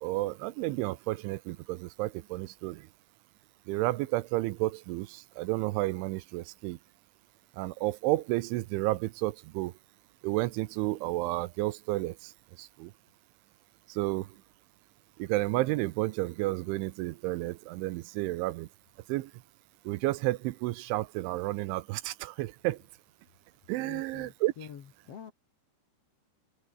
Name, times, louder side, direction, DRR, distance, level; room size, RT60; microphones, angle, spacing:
voice 1, 0.0-2.9 3.7-6.8 7.6-9.7 10.2-12.3 12.6-12.9 13.9-14.3 15.2-18.7 19.1-19.3 19.9-22.8 23.7-24.5, right 18 dB, 80° right, 3.1 m, -31 dB
voice 2, 23.8-25.3, left 8 dB, 70° left, 1.4 m, -47 dB
open air
omnidirectional pair, 5.7 m